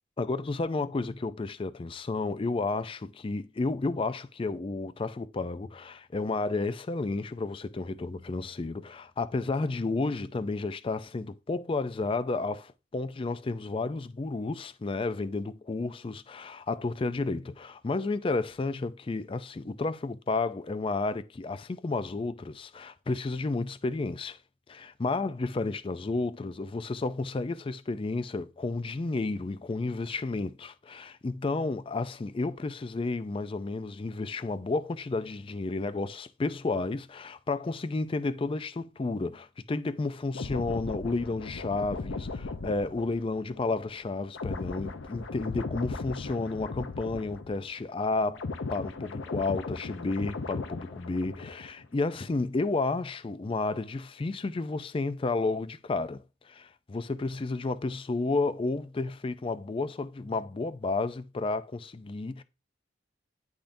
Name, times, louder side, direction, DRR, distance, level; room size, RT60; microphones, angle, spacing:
voice 1, 0.2-24.4 24.7-62.4, left 3 dB, 30° left, 0.4 m, -32 dB
sound 1, 40.3-47.8 48.1-51.8 52.1-52.4, left 3 dB, 80° left, 0.6 m, -38 dB
10.0 x 3.6 x 2.6 m
head